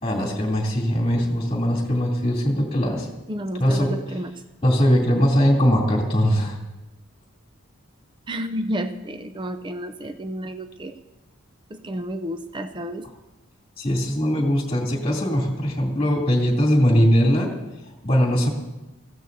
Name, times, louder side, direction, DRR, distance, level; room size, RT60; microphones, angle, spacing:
voice 1, 0.0-3.1 3.6-3.9 4.6-6.5 13.8-17.5 18.0-18.5, equal, 25° left, -3 dB, 2.9 m, -20 dB
voice 2, 3.3-4.4 8.3-10.9 11.7-13.1, equal, 20° right, 8 dB, 0.5 m, -31 dB
21.5 x 15.5 x 2.7 m, 1.0 s
head